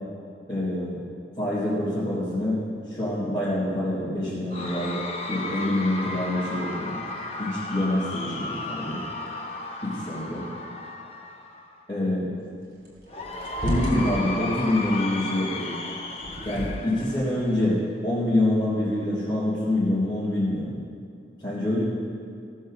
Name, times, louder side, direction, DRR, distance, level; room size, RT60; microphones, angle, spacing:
voice 1, 0.5-1.0 1.4-2.6 2.9-5.0 5.3-7.0 7.4-9.0 9.8-10.4 11.9-12.2 13.6-15.7 16.4-20.7 21.4-21.8, left 1 dB, 15° left, -12 dB, 3.3 m, -26 dB
Cheering / Crowd, 4.5-11.8 13.1-17.8, left 2 dB, 35° left, 0.9 m, -35 dB
sound 1, 12.8-14.8 16.1-17.1, equal, 75° right, 2.7 m, -31 dB
16.0 x 5.5 x 6.6 m, 2.4 s
head